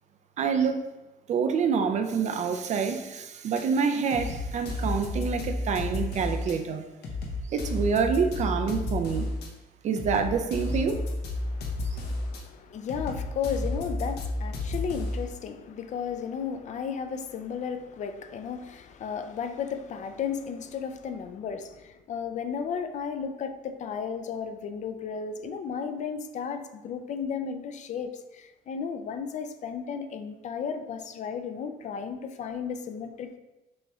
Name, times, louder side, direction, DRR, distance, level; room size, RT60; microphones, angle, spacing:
voice 1, 0.4-0.9 1.3-6.8 7.5-9.3 9.8-11.0, right 6 dB, 45° right, 7 dB, 0.4 m, -27 dB
sound 1, 3.6-3.7 4.1-6.6 7.0-9.5 10.0-12.4 12.9-15.3, left 2 dB, 75° left, 0.9 m, -32 dB
voice 2, 11.4-33.4, left 6 dB, 45° left, 8 dB, 0.4 m, -34 dB
6.1 x 3.1 x 2.4 m, 1.0 s
cardioid pair, 110°, 17 cm